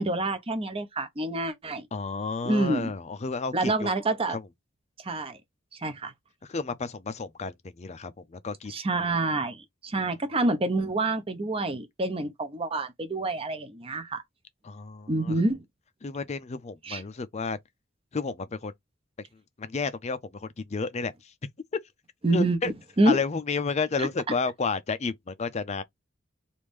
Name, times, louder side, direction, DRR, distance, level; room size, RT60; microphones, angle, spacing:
voice 1, 0.0-1.9 2.4-2.9 3.5-4.4 5.0-5.4 5.8-6.1 8.7-14.2 15.1-15.6 16.8-17.0 22.2-23.2 24.0-24.1, right 2 dB, 30° right, 0.7 m, -27 dB
voice 2, 1.9-3.9 4.3-4.4 6.5-8.7 14.6-15.4 16.0-17.6 18.1-18.7 19.6-21.1 22.3-22.7 23.1-25.8, left 4 dB, 35° left, 0.5 m, -31 dB
3.1 x 2.6 x 3.5 m
head